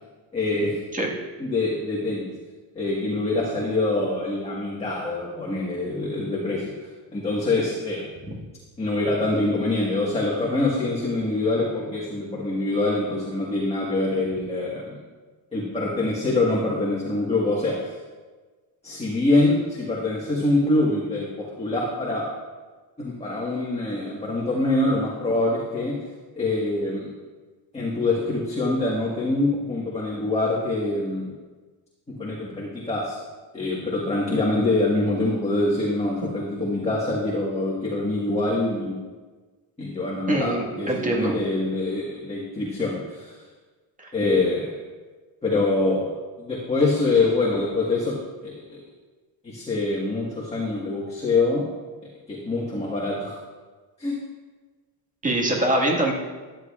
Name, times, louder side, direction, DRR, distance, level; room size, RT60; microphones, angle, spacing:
voice 1, 0.3-0.8 1.4-2.3 2.7-6.7 7.1-8.1 8.8-15.0 15.5-17.9 18.8-22.2 23.0-25.9 26.3-27.1 27.7-31.3 32.2-33.2 33.5-39.0 39.8-43.3 44.1-44.7 45.4-46.1 46.4-48.2 48.4-48.8 49.4-51.6 52.3-53.4 54.0-54.2, left 2 dB, 15° left, -5 dB, 1.5 m, -25 dB
voice 2, 40.3-41.3 44.0-44.1 55.2-56.1, right 1 dB, 20° right, -1 dB, 1.8 m, -24 dB
14.0 x 10.5 x 2.4 m, 1.3 s
cardioid pair, 145°, 40 cm